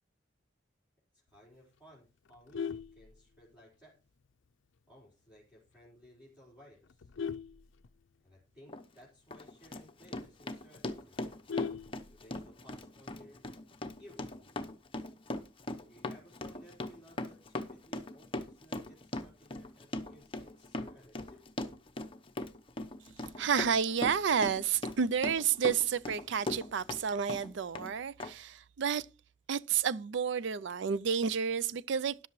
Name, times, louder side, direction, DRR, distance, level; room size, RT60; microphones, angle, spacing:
voice 1, 1.1-4.0 4.9-7.1 8.2-11.2 12.1-13.4 14.0-14.7 15.9-21.5, equal, 5° right, 4.3 m, -59 dB
Vehicle horn car horn honking, 2.3-3.7 4.2-4.5 4.8-4.9 5.3-5.4 5.7-6.0 6.6-8.4 8.8-8.9 9.2-9.3 9.7-9.8 10.1-10.2 10.5-12.5 13.7-14.2, left 6 dB, 80° left, 0.5 m, -40 dB
Run, 8.7-8.8 9.3-27.0 27.3-27.9 28.2-28.3, left 1 dB, 30° left, 0.9 m, -39 dB
voice 2, 23.4-29.1 29.5-32.3, right 7 dB, 65° right, 0.4 m, -30 dB
13.0 x 10.5 x 3.1 m
head